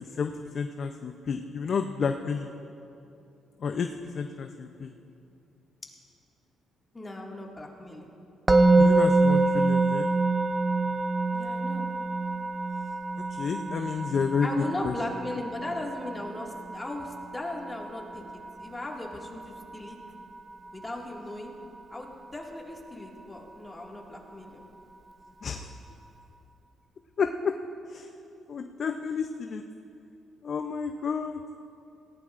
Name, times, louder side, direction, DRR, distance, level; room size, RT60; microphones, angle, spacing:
voice 1, 0.2-2.5 3.6-3.9 4.1-4.9 8.8-10.1 13.3-15.0 25.4-25.7 27.2-27.5 27.9-28.1 28.5-29.6 30.4-31.4, left 6 dB, 55° left, 6 dB, 0.5 m, -30 dB
voice 2, 6.9-8.1 11.3-11.9 14.4-20.0 20.7-21.6 21.9-24.6, left 2 dB, 20° left, -1 dB, 2.0 m, -37 dB
Musical instrument, 8.5-19.6, right 3 dB, 20° right, 0.5 m, -26 dB
18.0 x 16.0 x 2.5 m, 2.7 s
cardioid pair, 90°, 0 cm